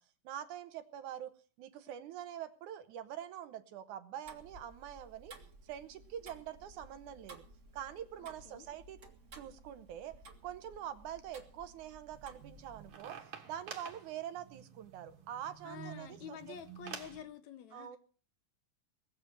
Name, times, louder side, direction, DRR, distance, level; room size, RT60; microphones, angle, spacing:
voice 1, 0.2-1.3 1.6-5.4 5.6-7.4 7.7-9.0 9.3-10.1 10.4-16.6 17.7-18.0, right 10 dB, 75° right, 2.3 m, -45 dB
Tick-tock, 4.2-13.0, right 2 dB, 30° right, 1.5 m, -56 dB
sound 1, 12.1-17.2, right 7 dB, 50° right, 2.3 m, -50 dB
voice 2, 15.6-18.0, left 8 dB, 70° left, 2.1 m, -48 dB
20.0 x 7.5 x 7.8 m
omnidirectional pair, 3.8 m